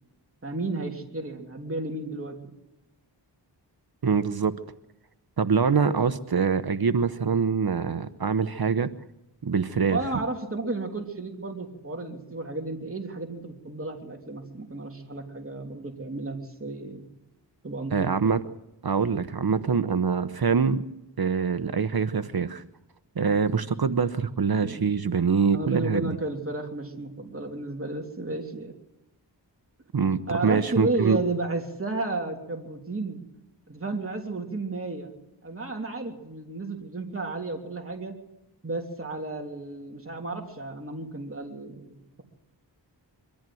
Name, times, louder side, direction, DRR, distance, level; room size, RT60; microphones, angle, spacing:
voice 1, 0.4-2.4 9.8-17.0 17.6-18.3 24.6-24.9 25.5-28.7 30.3-33.2 33.7-35.1 35.4-38.2 38.6-42.2, right 2 dB, 30° right, 2 dB, 3.1 m, -33 dB
voice 2, 4.0-4.5 5.4-8.9 9.4-10.0 17.9-18.4 18.8-20.8 21.2-22.6 23.2-26.2 29.9-31.2, right 5 dB, 55° right, 12 dB, 1.0 m, -24 dB
24.0 x 14.0 x 7.8 m, 0.90 s
wide cardioid pair, 55°, 44 cm